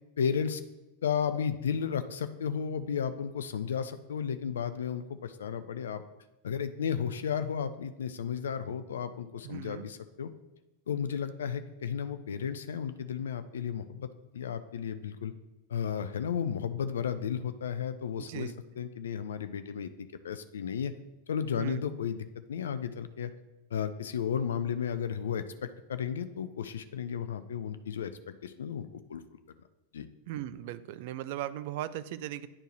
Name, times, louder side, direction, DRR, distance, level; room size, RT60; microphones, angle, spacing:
voice 1, 0.2-0.6 1.0-6.0 6.4-10.3 10.9-14.1 14.3-15.3 15.7-20.9 21.3-23.3 23.7-25.4 25.9-29.2 29.9-30.1, left 7 dB, 65° left, 11 dB, 0.3 m, -33 dB
voice 2, 9.4-9.9 18.2-18.5 21.6-21.8 30.3-32.5, right 12 dB, 50° right, 14 dB, 0.3 m, -38 dB
9.8 x 4.5 x 3.0 m, 1.0 s
figure-of-eight pair, 90°, 0 cm